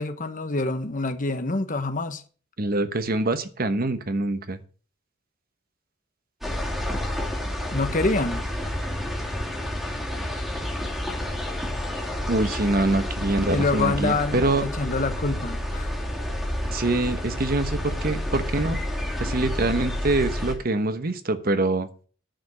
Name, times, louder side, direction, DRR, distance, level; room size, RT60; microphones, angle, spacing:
voice 1, 0.0-2.2 7.7-8.4 13.5-15.9, left 3 dB, 45° left, 1.2 m, -26 dB
voice 2, 2.6-4.6 12.3-14.7 16.7-18.8 19.2-21.9, right 2 dB, 50° right, 1.1 m, -24 dB
sound 1, 6.4-20.5, left 1 dB, ahead, 2.7 m, -29 dB
10.5 x 5.2 x 7.7 m
head